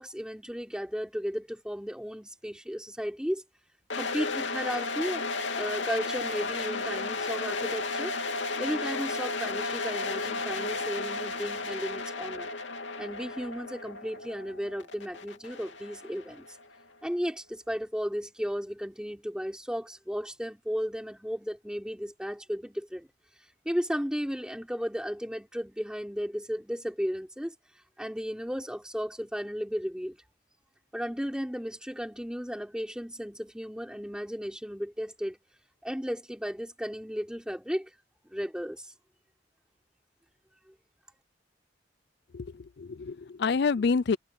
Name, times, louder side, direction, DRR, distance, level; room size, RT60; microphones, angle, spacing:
voice 1, 0.0-3.4 3.9-5.3 5.5-8.2 8.6-12.5 13.0-16.6 17.0-23.1 23.6-27.5 28.0-30.2 30.9-35.4 35.8-37.9 38.3-38.9 40.7-40.8, equal, 5° right, 4.4 m, -34 dB
sound 1, 3.9-16.8, left 3 dB, 75° left, 2.9 m, -34 dB
voice 2, 42.3-44.2, left 4 dB, 60° left, 0.4 m, -28 dB
head